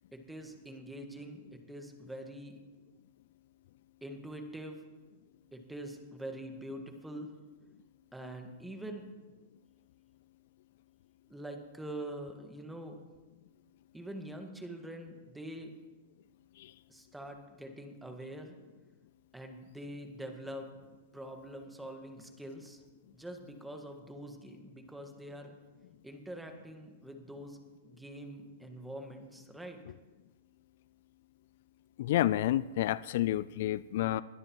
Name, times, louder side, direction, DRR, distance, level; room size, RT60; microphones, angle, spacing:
voice 1, 0.1-2.6 4.0-4.8 5.5-7.3 8.1-9.1 11.3-13.0 13.9-15.7 16.9-18.6 19.3-20.7 21.1-22.8 23.1-25.5 26.0-27.6 27.8-29.8, right 1 dB, 5° right, 4 dB, 1.6 m, -44 dB
voice 2, 32.0-34.2, left 14 dB, 65° left, 18 dB, 0.3 m, -29 dB
21.0 x 13.0 x 3.1 m, 1.2 s
hypercardioid pair, 140°, 0 cm